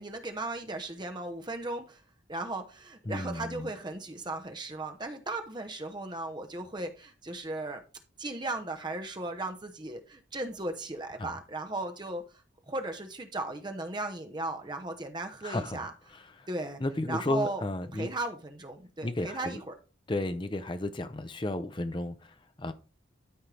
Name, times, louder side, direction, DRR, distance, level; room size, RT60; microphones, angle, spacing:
voice 1, 0.0-2.0 2.3-7.8 8.2-12.2 12.7-15.9 16.5-16.8 17.1-17.6 17.9-19.7, right 2 dB, 20° right, 0.9 m, -36 dB
voice 2, 3.1-3.7 11.2-11.4 15.4-15.9 16.1-16.5 16.8-18.1 19.0-19.6 20.1-22.7, left 1 dB, 25° left, 0.6 m, -33 dB
13.0 x 4.4 x 3.4 m
head